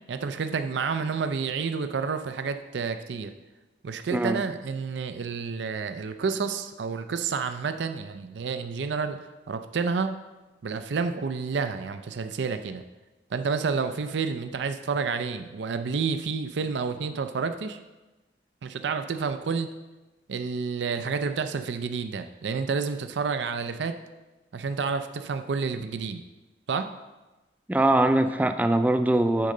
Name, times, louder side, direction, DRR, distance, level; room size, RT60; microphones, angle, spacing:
voice 1, 0.1-3.3 3.8-9.2 9.5-10.1 10.6-12.8 13.3-17.8 18.6-19.7 20.3-23.9 24.5-26.2 26.7-26.9, right 5 dB, 85° right, 9 dB, 0.4 m, -29 dB
voice 2, 27.7-29.5, right 1 dB, 10° right, 9 dB, 0.3 m, -22 dB
8.3 x 3.8 x 6.6 m, 1.1 s
head